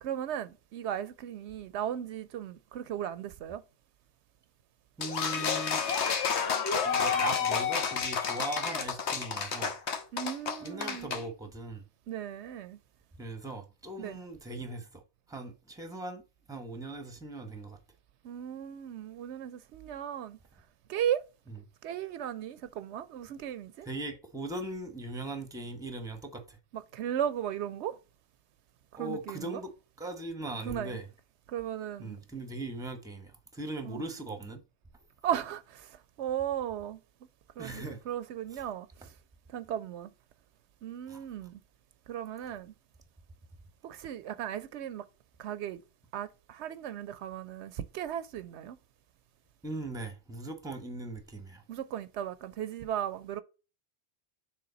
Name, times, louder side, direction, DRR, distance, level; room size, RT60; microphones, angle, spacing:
voice 1, 0.0-3.6 10.1-11.1 12.1-12.8 14.0-14.2 18.2-20.4 20.9-21.2 21.8-23.9 26.7-28.0 29.0-29.6 30.7-31.0 31.5-32.2 33.8-34.0 35.2-37.0 37.6-38.9 39.5-40.1 40.8-41.6 42.1-42.7 43.8-45.0 45.4-45.8 46.1-48.8 51.7-53.4, right 10 dB, 80° right, 0.8 m, -36 dB
sound 1, 5.0-11.2, left 6 dB, 75° left, 1.3 m, -30 dB
voice 2, 5.0-5.8 6.8-9.7 10.6-11.8 13.2-15.0 15.3-16.2 16.5-17.8 21.5-21.6 23.8-26.6 29.0-29.7 30.0-31.1 32.0-34.6 37.6-38.0 38.5-38.6 41.1-41.2 49.6-51.6, right 2 dB, 5° right, 0.9 m, -39 dB
6.7 x 3.7 x 3.9 m
omnidirectional pair, 1.2 m